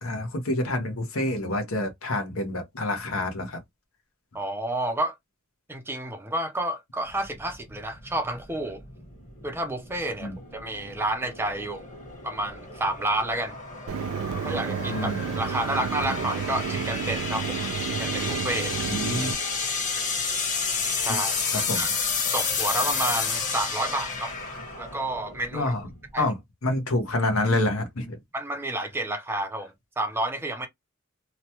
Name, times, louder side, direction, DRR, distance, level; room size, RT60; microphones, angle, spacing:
voice 1, 0.0-3.6 10.2-10.3 14.9-15.3 18.9-19.3 19.9-20.0 21.7-21.9 25.5-25.9 26.2-26.4 26.6-28.2, left 2 dB, 75° left, 0.9 m, -27 dB
voice 2, 4.3-5.2 5.7-8.8 9.4-11.9 12.2-13.5 14.4-17.6 17.9-18.7 21.0-21.9 22.3-24.3 24.8-25.7 26.1-26.3 28.3-30.7, right 1 dB, 10° right, 0.5 m, -30 dB
sound 1, 7.1-26.2, left 5 dB, 35° left, 1.2 m, -31 dB
Mechanisms, 13.9-19.3, right 7 dB, 70° right, 0.3 m, -31 dB
3.0 x 2.2 x 2.8 m
head